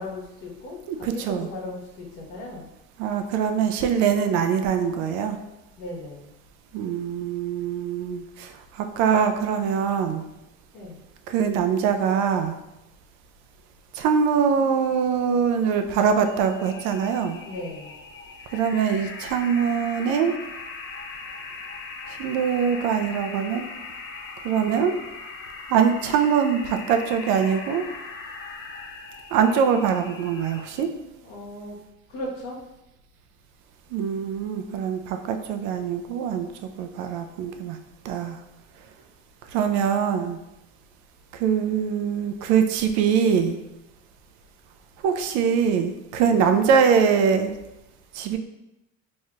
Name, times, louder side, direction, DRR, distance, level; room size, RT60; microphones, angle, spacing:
voice 1, 0.0-2.7 5.8-6.3 10.7-11.0 17.4-18.0 31.2-31.8 32.1-32.6 46.2-46.5, left 1 dB, 85° left, -4 dB, 1.4 m, -37 dB
voice 2, 0.9-1.5 3.0-5.4 6.7-10.2 11.3-12.6 13.9-17.4 18.5-20.3 22.1-23.7 24.4-25.0 25.7-27.9 29.3-30.9 33.9-36.5 36.8-37.8 38.0-38.4 39.5-40.4 41.3-43.6 45.0-47.5 48.1-48.4, right 7 dB, 65° right, 7 dB, 0.5 m, -23 dB
sound 1, 16.3-30.8, left 4 dB, 45° left, 0.6 m, -40 dB
4.4 x 3.0 x 2.4 m, 0.91 s
cardioid pair, 150°, 30 cm